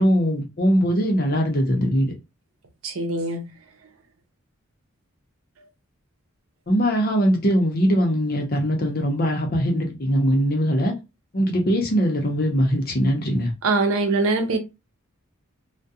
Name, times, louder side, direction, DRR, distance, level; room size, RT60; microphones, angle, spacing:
voice 1, 0.0-2.1 6.7-10.9 11.3-13.5, equal, 45° left, 0.7 m, -21 dB
voice 2, 2.8-3.5 13.6-14.6, right 3 dB, 80° right, 0.6 m, -22 dB
2.3 x 2.2 x 2.7 m
head